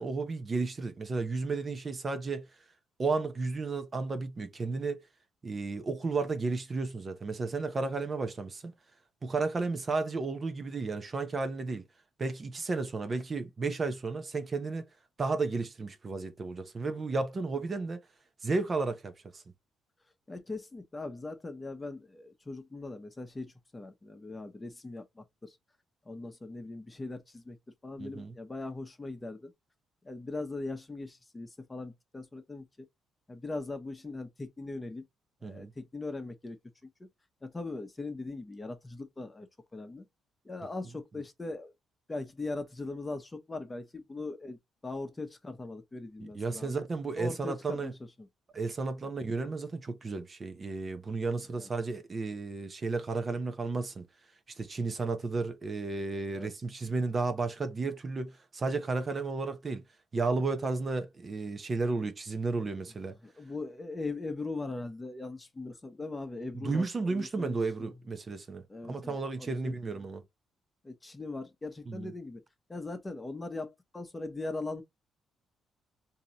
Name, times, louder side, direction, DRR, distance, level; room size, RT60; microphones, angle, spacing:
voice 1, 0.0-2.5 3.0-5.0 5.4-8.7 9.2-11.8 12.2-14.8 15.2-18.0 18.4-19.4 28.0-28.3 35.4-35.7 46.2-47.9 48.5-54.1 54.5-59.8 60.1-63.2 66.5-70.2 71.9-72.1, right 3 dB, 35° right, 0.7 m, -33 dB
voice 2, 20.3-25.6 26.1-27.6 27.8-29.5 30.0-32.9 33.3-35.1 35.4-36.6 36.8-37.1 37.4-39.5 39.7-40.1 40.4-41.7 42.1-46.8 47.1-47.9 48.2-48.3 49.0-49.1 51.6-51.7 56.3-56.5 63.2-68.0 68.7-69.7 70.8-72.4 72.7-74.8, left 3 dB, 20° left, 0.9 m, -40 dB
3.7 x 2.8 x 2.8 m
cardioid pair, 90°, 0 cm